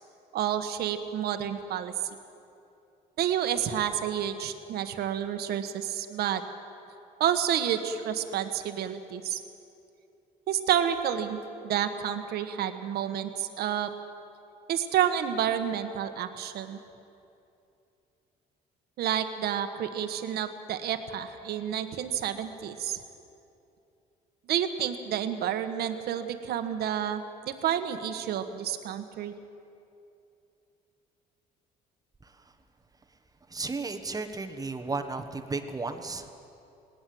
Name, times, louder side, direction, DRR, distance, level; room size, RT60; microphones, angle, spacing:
voice 1, 0.3-1.9 3.2-6.4 7.2-9.4 10.5-13.9 14.7-16.8 19.0-23.0 24.5-29.3, right 9 dB, 70° right, 8 dB, 1.5 m, -29 dB
voice 2, 32.2-32.5 33.5-36.3, right 3 dB, 20° right, 7 dB, 1.3 m, -34 dB
19.5 x 19.0 x 7.9 m, 2.7 s
cardioid pair, 110°, 17 cm